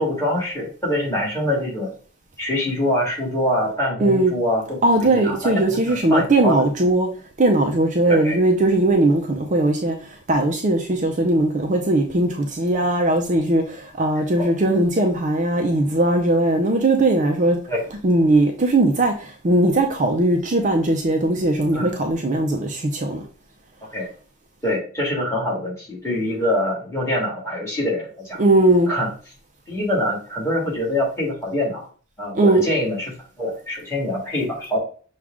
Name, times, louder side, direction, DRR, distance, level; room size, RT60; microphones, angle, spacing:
voice 1, 0.0-1.9 2.4-4.6 5.0-6.5 8.1-8.4 14.4-14.5 17.7-17.8 21.7-22.0 23.9-24.1 24.6-28.4 28.9-29.1 29.7-31.9 32.2-34.8, left 1 dB, 15° left, 2.0 m, -24 dB
voice 2, 4.0-4.3 4.8-7.1 7.4-17.6 18.0-23.2 28.4-28.9 32.4-32.7, right 1 dB, 35° right, 0.5 m, -19 dB
6.1 x 2.4 x 3.6 m
head